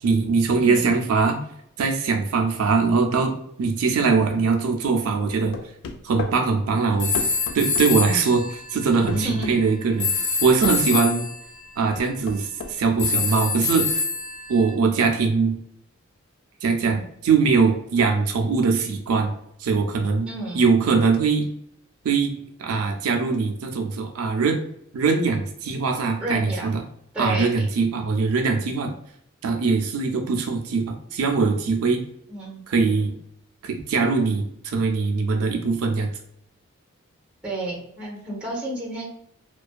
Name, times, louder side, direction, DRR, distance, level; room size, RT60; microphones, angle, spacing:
voice 1, 0.0-1.4 1.8-5.6 6.0-7.1 7.5-10.1 10.4-11.2 11.8-13.9 14.5-15.6 16.6-19.3 19.6-20.3 20.5-21.5 22.0-22.3 22.6-24.6 24.9-26.8 27.2-28.9 29.4-32.0 32.7-33.1 33.6-36.1, right 4 dB, 80° right, 4 dB, 0.4 m, -21 dB
voice 2, 0.6-0.9 9.1-9.5 20.2-20.6 26.2-26.7 27.1-27.7 32.3-32.6 37.4-39.1, right 1 dB, 5° right, -4 dB, 0.7 m, -31 dB
sound 1, 5.5-6.4 7.1-7.9 9.1-9.6 10.6-10.8 12.0-12.8, left 4 dB, 70° left, 0.3 m, -32 dB
sound 2, 7.0-9.2 10.0-11.4 13.0-14.7, left 4 dB, 55° left, 0.7 m, -26 dB
2.4 x 2.2 x 2.3 m, 0.70 s
head